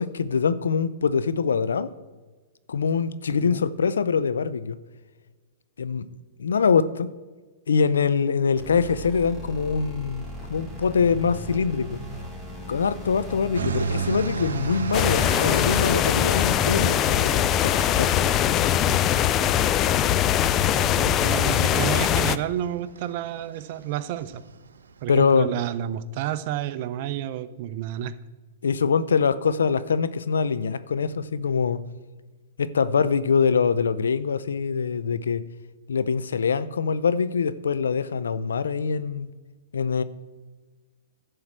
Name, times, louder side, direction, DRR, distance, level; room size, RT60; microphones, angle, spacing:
voice 1, 0.0-1.9 2.7-4.8 5.8-6.0 6.4-7.1 7.7-10.2 10.5-12.0 12.7-18.1 25.1-25.5 28.6-31.8 32.6-35.4 35.9-39.3 39.7-40.0, left 6 dB, 85° left, 15 dB, 0.6 m, -24 dB
sound 1, 8.6-17.6, equal, ahead, 3.2 m, -38 dB
sound 2, 13.5-25.0, right 6 dB, 85° right, 0.7 m, -35 dB
sound 3, 14.9-22.4, left 10 dB, 30° left, 0.4 m, -21 dB
voice 2, 20.7-24.4 25.0-28.1, right 11 dB, 50° right, 14 dB, 0.6 m, -30 dB
11.0 x 4.8 x 7.5 m, 1.3 s
hypercardioid pair, 130°, 0 cm